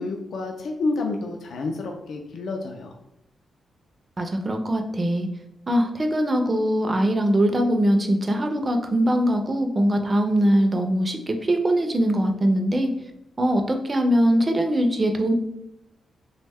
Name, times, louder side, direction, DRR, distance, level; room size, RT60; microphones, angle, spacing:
voice 1, 0.0-3.0, left 3 dB, 70° left, 2 dB, 0.3 m, -29 dB
voice 2, 4.2-5.3 5.7-12.9 13.4-15.3, equal, 25° right, 4 dB, 0.4 m, -22 dB
3.3 x 2.1 x 3.4 m, 0.84 s
wide cardioid pair, 155°, 0 cm